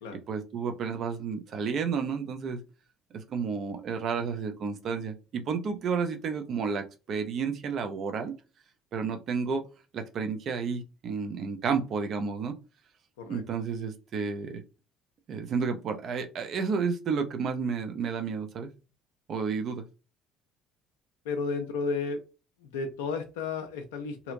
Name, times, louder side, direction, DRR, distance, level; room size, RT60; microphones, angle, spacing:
voice 1, 0.1-2.6 3.1-8.3 8.9-9.6 9.9-12.6 13.3-14.6 15.3-18.7 19.3-19.8, right 5 dB, 45° right, 0.5 m, -31 dB
voice 2, 21.3-22.2 22.6-24.3, left 4 dB, 70° left, 0.4 m, -33 dB
2.8 x 2.4 x 2.5 m
figure-of-eight pair, 55°, 0 cm